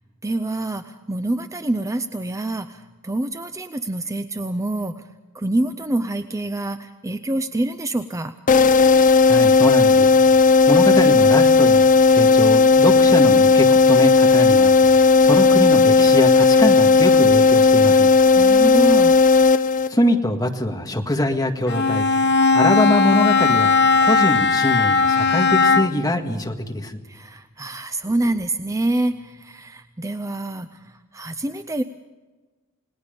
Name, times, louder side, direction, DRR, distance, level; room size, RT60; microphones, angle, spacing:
voice 1, 0.2-5.0 5.3-8.3 18.4-19.2 27.1-31.8, right 1 dB, 15° right, 10 dB, 0.6 m, -26 dB
sound 1, 8.5-20.2, left 4 dB, 35° left, 0.7 m, -14 dB
voice 2, 8.9-10.1 10.7-18.1 19.9-23.7 24.0-27.0, left 1 dB, 15° left, 3 dB, 1.8 m, -23 dB
Bowed string instrument, 21.7-26.1, left 4 dB, 55° left, 1.2 m, -17 dB
29.0 x 19.0 x 5.3 m, 1.2 s
head